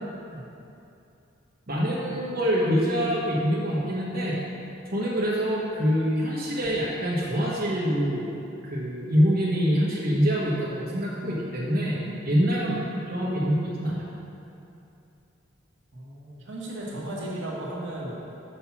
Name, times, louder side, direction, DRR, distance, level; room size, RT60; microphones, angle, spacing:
voice 1, 1.7-4.4 4.9-8.3 8.6-12.0 12.2-14.0, equal, 50° right, -7 dB, 1.2 m, -25 dB
voice 2, 15.9-18.1, right 1 dB, 75° right, -5 dB, 1.4 m, -35 dB
5.8 x 5.4 x 5.9 m, 2.7 s
head